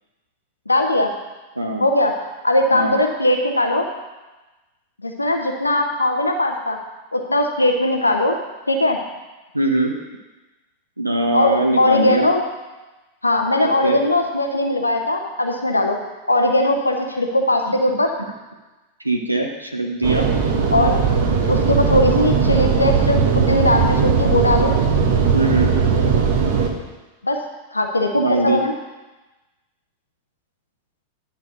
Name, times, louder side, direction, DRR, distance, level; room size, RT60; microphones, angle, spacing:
voice 1, 0.7-1.1 1.8-3.9 5.0-6.8 7.1-8.4 8.7-9.0 11.3-12.4 13.2-16.0 16.3-18.1 20.7-21.0 21.5-24.7 27.2-27.4 27.7-28.7, left 1 dB, 80° left, 3 dB, 0.7 m, -19 dB
voice 2, 1.6-1.9 2.7-3.0 9.5-9.9 11.0-12.2 13.6-14.0 19.0-20.3 25.3-25.7 28.1-28.6, right 2 dB, 85° right, 2 dB, 0.8 m, -21 dB
sound 1, 20.0-26.7, right 6 dB, 50° right, 1.1 m, -18 dB
10.5 x 4.3 x 6.5 m, 1.1 s
figure-of-eight pair, 90°, 0 cm